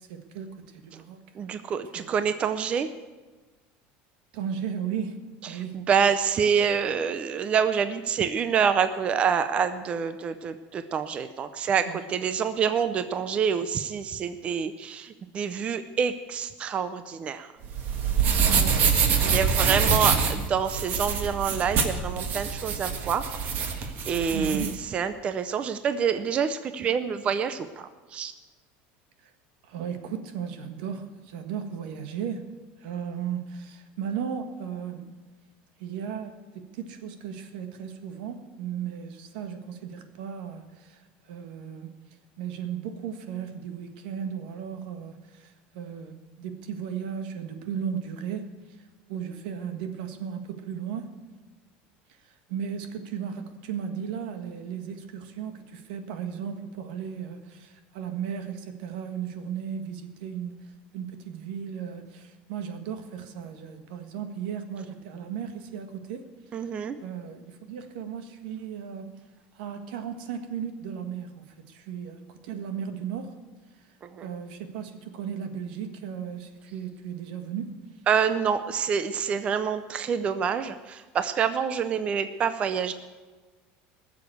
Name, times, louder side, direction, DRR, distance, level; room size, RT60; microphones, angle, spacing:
voice 1, 0.0-1.2 1.9-2.1 4.3-5.8 11.8-12.1 18.4-20.2 24.3-24.9 29.2-29.3 29.6-32.5 32.8-35.1 35.8-41.0 41.3-41.9 42.4-48.8 49.1-51.2 52.2-60.7 60.9-66.3 66.6-66.7 67.0-69.2 69.5-73.3 74.2-77.8, right 7 dB, 85° right, 7 dB, 1.6 m, -36 dB
voice 2, 1.4-2.9 5.7-15.1 15.3-17.5 19.3-23.2 23.8-24.6 24.9-27.7 28.1-28.3 66.5-67.0 78.1-82.9, right 7 dB, 25° right, 11 dB, 0.5 m, -27 dB
sound 1, 17.6-24.7, right 6 dB, 40° right, 1.5 m, -25 dB
18.5 x 7.1 x 8.0 m, 1.3 s
cardioid pair, 165°, 5 cm